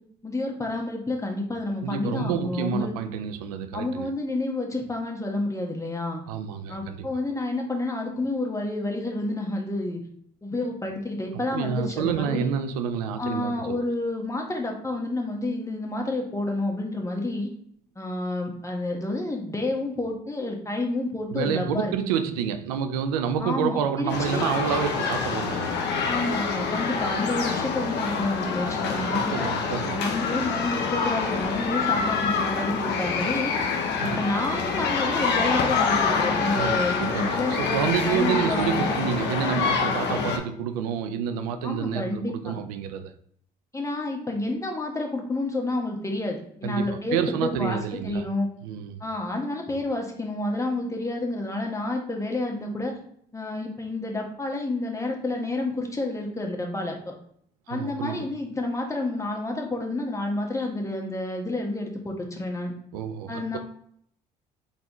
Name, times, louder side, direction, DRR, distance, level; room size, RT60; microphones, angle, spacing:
voice 1, 0.2-2.9 3.7-6.2 6.7-10.0 10.4-12.5 13.2-17.5 18.0-21.9 23.4-24.4 26.0-29.5 30.0-33.5 34.0-37.6 38.1-38.9 41.6-42.6 43.7-48.5 49.0-53.0 53.3-57.1 57.7-62.7 63.3-63.6, left 2 dB, 15° left, 1.3 m, -29 dB
voice 2, 1.8-4.1 6.3-7.1 11.3-13.8 21.3-25.8 29.1-30.1 34.0-34.2 36.5-43.1 46.6-48.2 48.6-49.0 57.7-58.3 62.9-63.6, right 7 dB, 85° right, 0.5 m, -29 dB
sound 1, 24.1-40.4, left 5 dB, 65° left, 0.8 m, -26 dB
3.8 x 3.6 x 3.0 m
hypercardioid pair, 55°, 19 cm